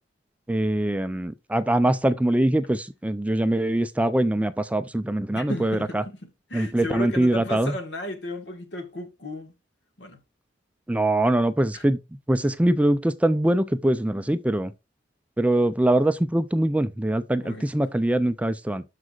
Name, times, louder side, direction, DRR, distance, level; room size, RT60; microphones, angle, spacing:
voice 1, 0.5-6.0 6.5-7.7 10.9-12.0 12.3-14.7 15.4-18.8, right 1 dB, 10° right, 0.4 m, -23 dB
voice 2, 5.3-9.5 10.0-10.2 11.7-11.8 17.4-17.7, left 1 dB, 70° left, 1.5 m, -34 dB
12.5 x 4.9 x 2.4 m
head